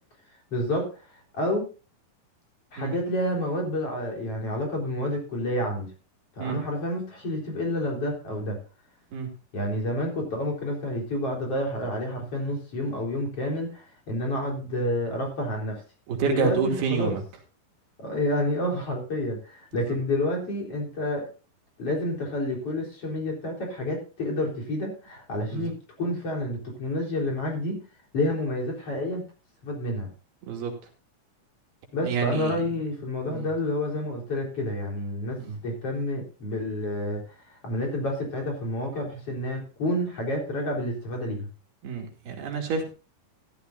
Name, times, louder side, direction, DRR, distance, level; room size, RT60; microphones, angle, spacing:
voice 1, 0.5-1.1 1.3-1.7 2.7-5.9 6.4-8.6 9.5-15.8 16.3-17.2 18.0-21.3 21.8-27.8 28.1-29.3 29.6-30.1 31.9-41.5, left 1 dB, 40° left, 0 dB, 4.8 m, -29 dB
voice 2, 16.1-17.2 19.7-20.0 25.5-25.7 30.4-30.8 32.0-32.6 33.3-33.5 35.4-35.6 41.8-42.9, right 6 dB, 80° right, 2 dB, 4.5 m, -29 dB
14.0 x 13.5 x 2.6 m, 0.34 s
omnidirectional pair, 4.5 m